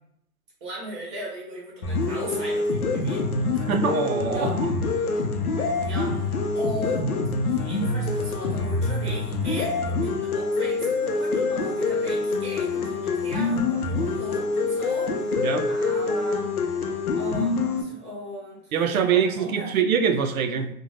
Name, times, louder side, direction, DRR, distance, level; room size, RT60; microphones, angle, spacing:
voice 1, 0.6-3.7 4.3-4.6 5.8-7.2 7.5-16.5 17.1-19.7, right 1 dB, 20° right, -5 dB, 0.7 m, -37 dB
sound 1, 1.8-17.8, left 3 dB, 70° left, 0.7 m, -25 dB
voice 2, 3.7-4.5 15.4-15.7 18.7-20.7, right 7 dB, 65° right, 7 dB, 0.5 m, -23 dB
2.5 x 2.2 x 3.1 m, 0.73 s
hypercardioid pair, 155°, 46 cm